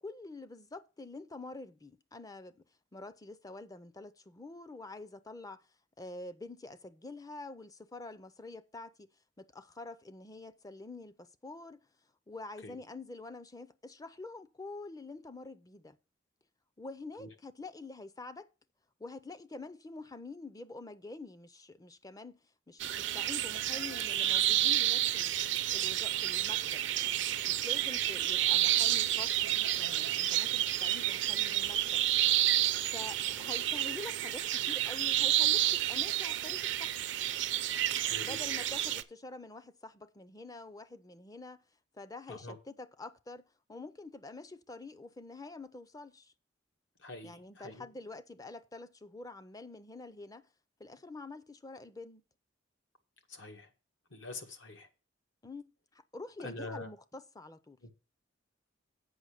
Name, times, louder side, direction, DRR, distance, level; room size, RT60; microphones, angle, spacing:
voice 1, 0.0-2.6 2.9-5.7 6.0-8.9 9.4-11.8 12.3-16.0 16.8-18.5 19.0-22.4 22.7-25.4 25.7-26.8 27.5-32.0 32.9-37.0 38.2-41.6 41.9-46.3 47.2-50.5 50.8-52.2 55.4-57.8, left 3 dB, 20° left, 0.5 m, -47 dB
sound 1, 22.8-39.0, right 13 dB, 65° right, 0.5 m, -30 dB
voice 2, 47.0-47.4 47.6-47.8 53.3-53.7 54.1-54.9 56.4-56.9 57.8-57.9, left 2 dB, 70° left, 1.5 m, -44 dB
7.9 x 5.6 x 6.4 m
head